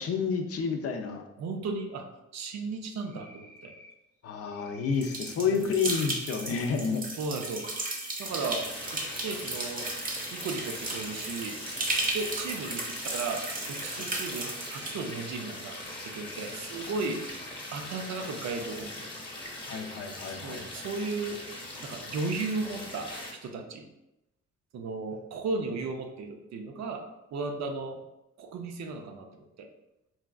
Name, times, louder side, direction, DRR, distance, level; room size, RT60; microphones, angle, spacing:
voice 1, 0.0-1.2 4.2-7.0 13.9-14.0 17.1-17.2 19.7-20.8, left 5 dB, 50° left, 4 dB, 0.5 m, -30 dB
voice 2, 1.4-2.1 2.3-3.7 5.4-5.7 7.2-7.7 8.2-8.6 8.9-9.9 10.3-11.6 12.1-15.8 16.0-17.2 17.7-19.1 20.4-21.4 21.8-23.9 24.7-27.0 27.3-28.0 28.4-29.7, right 3 dB, 65° right, 5 dB, 0.5 m, -35 dB
Cricket, 3.0-3.9 4.5-5.3 5.8-6.6 7.4-8.2 8.6-9.6 10.0-11.1 11.7-12.5 13.1-13.9 14.4-15.3 15.7-16.5 16.9-17.8, left 1 dB, 85° right, 1.0 m, -53 dB
sound 1, 5.0-14.9, right 2 dB, 30° right, 0.7 m, -35 dB
sound 2, 8.3-23.3, left 1 dB, 15° left, 1.0 m, -41 dB
4.0 x 2.3 x 2.3 m, 0.90 s
cardioid pair, 90°, 30 cm